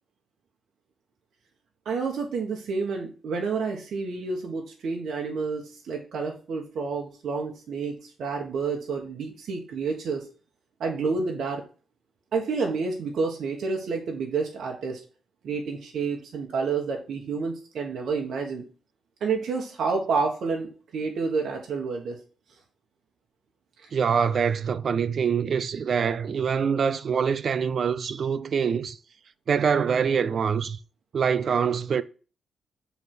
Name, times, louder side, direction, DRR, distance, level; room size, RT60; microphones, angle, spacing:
voice 1, 1.8-10.3 10.8-11.6 12.3-15.0 15.4-18.6 19.2-22.2 23.8-23.9, right 4 dB, 75° right, 1.4 m, -29 dB
voice 2, 23.9-29.0 29.5-30.8 31.1-32.0, right 6 dB, 60° right, 0.5 m, -24 dB
7.1 x 3.5 x 6.1 m
cardioid pair, 90°, 0 cm